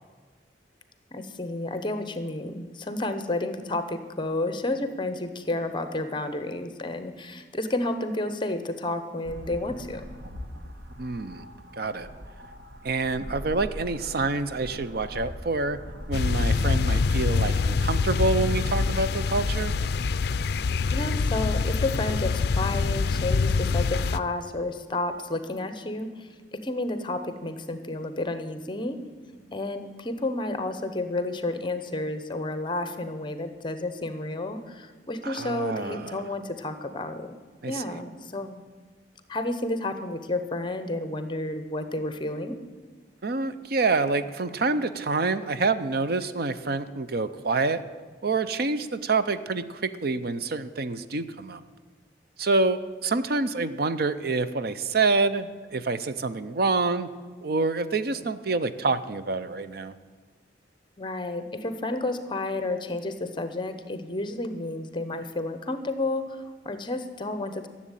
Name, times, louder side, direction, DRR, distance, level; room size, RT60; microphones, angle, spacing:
voice 1, 1.1-10.1 20.9-29.0 29.5-37.3 37.7-38.6 39.3-42.6 61.0-67.7, left 2 dB, 25° left, 10 dB, 0.9 m, -31 dB
sound 1, 9.2-19.9, equal, 75° right, 1.4 m, -41 dB
voice 2, 11.0-11.5 11.8-12.1 12.8-15.8 16.1-19.7 35.2-36.3 37.6-38.0 43.2-47.8 48.2-51.6 52.4-57.1 57.4-59.9, right 3 dB, 55° right, 12 dB, 0.6 m, -27 dB
sound 2, 16.1-24.2, left 4 dB, 60° left, 0.4 m, -25 dB
14.0 x 7.4 x 9.0 m, 1.4 s
head